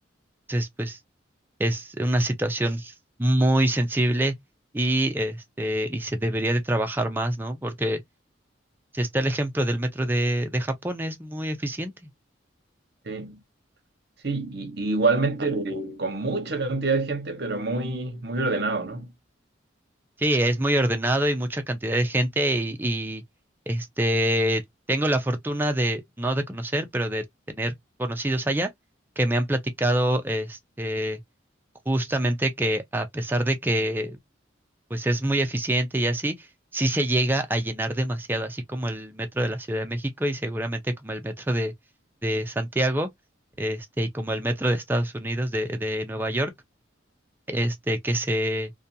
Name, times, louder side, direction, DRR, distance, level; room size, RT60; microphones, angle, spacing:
voice 1, 0.5-1.0 1.6-2.9 3.2-4.3 4.7-8.0 8.9-11.9 20.2-23.2 23.7-24.6 24.9-27.7 28.0-28.7 29.2-31.2 31.9-34.2 34.9-36.5 36.7-41.7 42.2-43.1 43.6-46.5 47.5-48.7, right 1 dB, 10° right, 0.4 m, -25 dB
voice 2, 13.1-13.4 14.2-19.1, right 3 dB, 55° right, 0.8 m, -26 dB
2.4 x 2.2 x 2.6 m
head